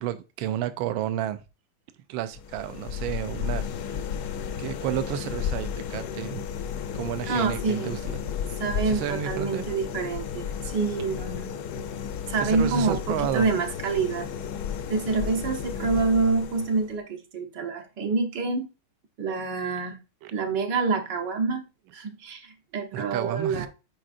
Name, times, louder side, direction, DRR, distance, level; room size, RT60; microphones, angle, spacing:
voice 1, 0.0-1.4 2.1-3.7 4.6-6.4 6.9-8.3 8.8-9.6 12.4-13.5 20.2-20.3 22.9-23.7, right 12 dB, 80° right, 1.3 m, -31 dB
sound 1, 2.3-17.0, left 8 dB, 80° left, 0.9 m, -33 dB
voice 2, 7.3-8.0 8.6-11.5 12.3-14.3 14.9-18.7 19.2-20.0 20.3-21.6 21.9-23.7, right 4 dB, 60° right, 1.5 m, -27 dB
8.6 x 4.4 x 2.5 m
omnidirectional pair, 2.3 m